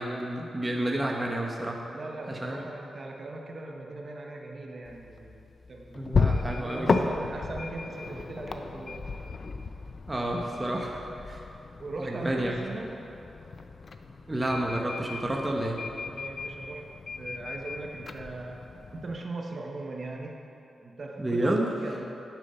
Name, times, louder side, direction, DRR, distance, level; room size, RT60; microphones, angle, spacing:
voice 1, 0.0-1.8 2.3-2.6 5.9-7.1 10.1-11.4 12.0-12.6 14.3-15.8 21.2-21.7, right 1 dB, 15° right, -1 dB, 1.0 m, -30 dB
voice 2, 1.9-9.1 11.8-13.0 16.1-16.9 17.2-18.6 18.9-20.4 20.8-22.1, right 2 dB, 40° right, 1 dB, 1.0 m, -39 dB
sound 1, 4.8-19.2, left 4 dB, 40° left, 0.5 m, -34 dB
10.5 x 8.6 x 5.6 m, 3.0 s
wide cardioid pair, 155°, 0 cm